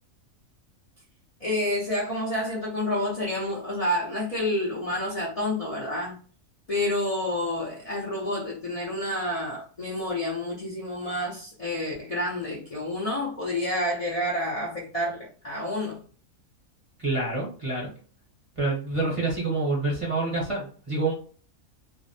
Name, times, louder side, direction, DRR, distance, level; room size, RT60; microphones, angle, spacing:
voice 1, 1.4-6.2 6.7-16.0, left 1 dB, 40° left, 0.5 m, -29 dB
voice 2, 17.0-17.9 18.6-21.1, right 3 dB, 30° right, 0.8 m, -27 dB
2.6 x 2.0 x 2.6 m
omnidirectional pair, 1.4 m